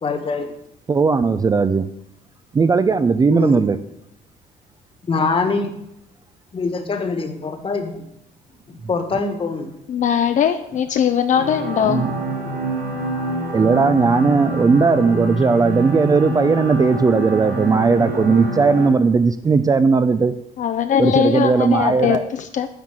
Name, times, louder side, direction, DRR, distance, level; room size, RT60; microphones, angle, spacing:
voice 1, 0.0-0.5 3.3-3.6 5.1-5.7 6.5-8.0 8.7-9.7, left 4 dB, 30° left, 7 dB, 1.5 m, -23 dB
voice 2, 0.9-1.9 2.5-3.8 11.9-12.1 13.5-20.3 21.0-22.2, right 4 dB, 20° right, 12 dB, 0.4 m, -17 dB
voice 3, 9.9-12.1 20.6-22.7, left 8 dB, 50° left, 8 dB, 0.6 m, -20 dB
sound 1, 11.3-18.9, right 1 dB, 75° right, 3.3 m, -26 dB
9.4 x 4.5 x 7.6 m, 0.80 s
cardioid pair, 110°, 17 cm